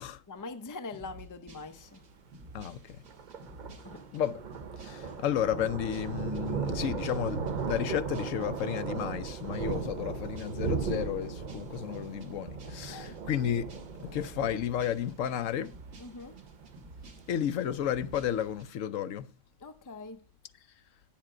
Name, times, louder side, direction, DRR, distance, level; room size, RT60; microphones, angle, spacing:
voice 1, 0.3-2.0 3.8-4.0 12.9-13.2 16.0-16.4 19.6-20.3, left 3 dB, 20° left, 0.5 m, -43 dB
sound 1, 0.9-18.7, right 1 dB, 75° right, 1.8 m, -51 dB
Thunder, 1.7-18.6, right 5 dB, 50° right, 0.6 m, -38 dB
voice 2, 2.5-3.0 4.1-4.4 4.8-13.7 14.0-15.7 17.3-19.3, left 10 dB, 75° left, 1.0 m, -32 dB
9.8 x 7.3 x 5.0 m
omnidirectional pair, 1.4 m